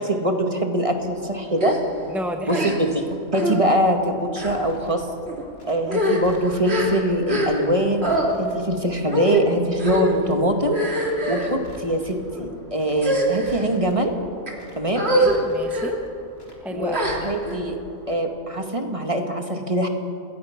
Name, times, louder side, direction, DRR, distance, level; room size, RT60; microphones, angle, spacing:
voice 1, 0.0-1.8 2.5-5.1 5.6-8.1 8.4-10.8 11.3-14.1 14.8-15.1 16.7-17.8 18.1-19.9, right 1 dB, 25° right, 4 dB, 2.0 m, -23 dB
sound 1, 1.6-1.8 2.5-3.0 3.3-3.6 4.3-4.6 5.3-5.4 5.8-7.7 8.0-8.3 9.1-9.4 9.8-10.2 10.7-11.5 12.2-12.5 13.0-13.7 14.2-14.5 15.0-15.4 15.7-15.9 16.9-17.6, equal, 45° right, 3.3 m, -24 dB
voice 2, 2.1-2.7 8.4-8.8 15.1-16.0 16.6-17.3, equal, ahead, 4 dB, 1.0 m, -32 dB
Crackle, 4.4-5.0 5.6-6.8 7.3-7.6 7.9-8.6 9.2-9.4 9.7-10.4 10.9-11.2 11.5-12.2 12.7-13.0 13.3-14.0 14.5-14.8 15.1-15.8 16.3-16.6 16.9-17.6 17.9-18.0, left 1 dB, 75° left, 4.0 m, -44 dB
28.0 x 20.5 x 6.0 m, 2.5 s
omnidirectional pair, 1.4 m